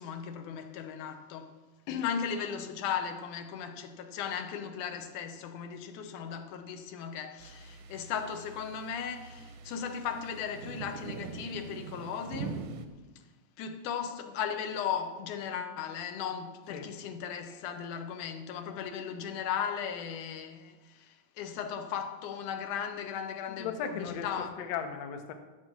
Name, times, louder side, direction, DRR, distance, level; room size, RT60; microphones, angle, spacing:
voice 1, 0.0-1.5 1.9-12.6 13.6-23.7 24.0-24.5, left 7 dB, 90° left, 2.4 m, -36 dB
sound 1, 7.4-12.9, right 6 dB, 85° right, 2.2 m, -43 dB
voice 2, 23.5-25.3, left 7 dB, 65° left, 1.9 m, -37 dB
12.5 x 7.4 x 6.0 m
omnidirectional pair, 3.5 m